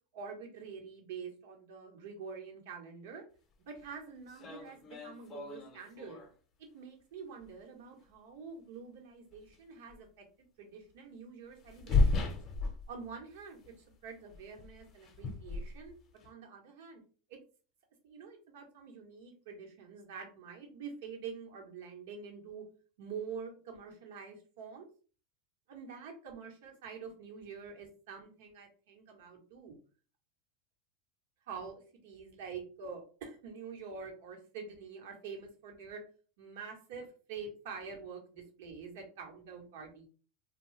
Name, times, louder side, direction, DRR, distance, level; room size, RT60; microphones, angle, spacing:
voice 1, 0.1-3.2 3.6-6.2 6.7-10.2 10.6-12.4 12.9-13.6 14.0-15.9 16.2-17.0 17.3-17.4 18.0-22.6 23.0-24.9 25.7-29.8 31.5-36.0 36.4-40.1, right 5 dB, 75° right, 1 dB, 1.1 m, -46 dB
sound 1, 3.8-3.9 4.3-6.3 7.4-7.5 9.3-9.5 9.9-10.0 11.5-13.4 13.6-13.9 14.3-16.3, left 3 dB, 35° left, 0.7 m, -34 dB
2.6 x 2.3 x 3.2 m, 0.39 s
hypercardioid pair, 110°, 0 cm